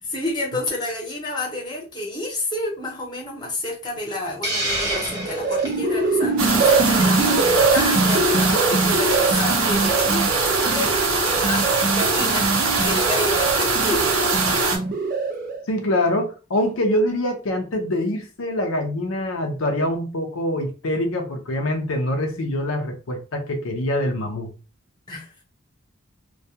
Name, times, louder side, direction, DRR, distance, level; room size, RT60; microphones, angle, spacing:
voice 1, 0.0-12.5 12.8-14.7 25.1-25.3, left 2 dB, 20° left, 0.9 m, -30 dB
Hiss, 4.4-5.8, right 1 dB, 15° right, 0.8 m, -26 dB
sound 1, 5.1-15.6, right 3 dB, 40° right, 0.4 m, -23 dB
sound 2, 6.4-14.8, right 4 dB, 80° right, 0.7 m, -22 dB
voice 2, 15.7-24.5, left 1 dB, 80° left, 0.6 m, -24 dB
2.2 x 2.2 x 2.7 m
head